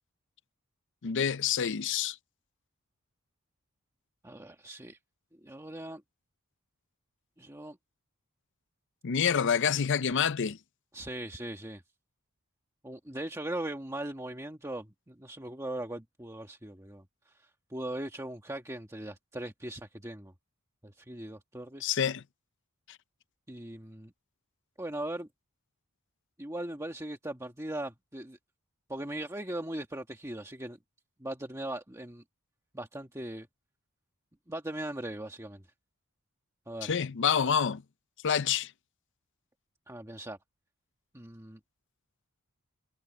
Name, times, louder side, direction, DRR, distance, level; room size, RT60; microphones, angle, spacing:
voice 1, 1.0-2.2 9.0-10.6 21.8-22.2 36.8-37.8 38.2-38.7, left 7 dB, 55° left, 0.5 m, -27 dB
voice 2, 4.2-5.0 5.4-6.0 7.4-7.8 10.9-11.8 12.8-20.3 20.8-22.0 23.5-24.1 24.8-25.3 26.4-28.4 28.9-30.8 31.2-32.2 32.7-33.5 34.5-35.6 36.7-36.9 39.9-40.4 41.1-41.6, right 1 dB, 15° right, 1.5 m, -39 dB
head